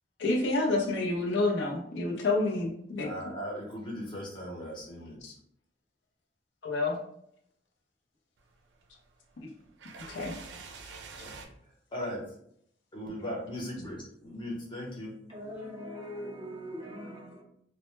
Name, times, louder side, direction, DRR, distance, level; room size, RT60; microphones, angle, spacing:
voice 1, 0.2-3.1 5.2-5.3 6.6-7.0 10.1-10.3, left 2 dB, 80° left, 0.5 m, -28 dB
voice 2, 3.0-5.3 11.2-11.3 11.9-12.3 12.9-15.2, equal, 30° left, 0.7 m, -38 dB
sound 1, 8.4-11.5, right 4 dB, 80° right, 0.4 m, -48 dB
voice 3, 15.3-17.4, equal, 25° right, 0.6 m, -41 dB
2.1 x 2.0 x 3.0 m
head